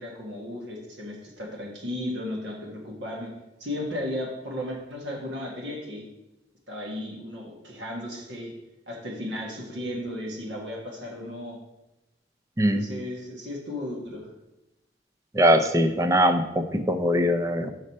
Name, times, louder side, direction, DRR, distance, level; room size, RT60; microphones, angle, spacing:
voice 1, 0.0-3.3 3.6-6.1 6.7-8.5 8.9-11.6 12.7-14.3, left 1 dB, 85° right, -2 dB, 1.7 m, -35 dB
voice 2, 15.3-16.4 16.7-17.7, equal, 15° right, 8 dB, 0.5 m, -21 dB
6.4 x 6.3 x 4.3 m, 0.96 s
head